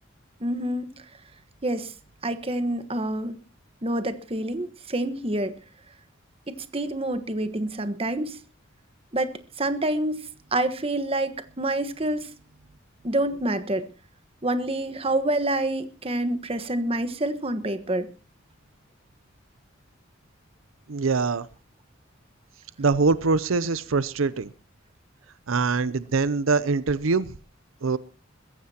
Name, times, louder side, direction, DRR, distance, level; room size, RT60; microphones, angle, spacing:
voice 1, 0.4-1.0 1.6-1.9 2.2-3.3 3.8-5.5 6.5-8.4 9.1-12.3 13.0-13.9 14.4-18.1, right 1 dB, 30° right, 1.3 m, -27 dB
voice 2, 20.9-21.5 22.8-24.5 25.5-27.3 27.8-28.0, right 4 dB, 85° right, 0.6 m, -23 dB
22.0 x 15.5 x 2.9 m
head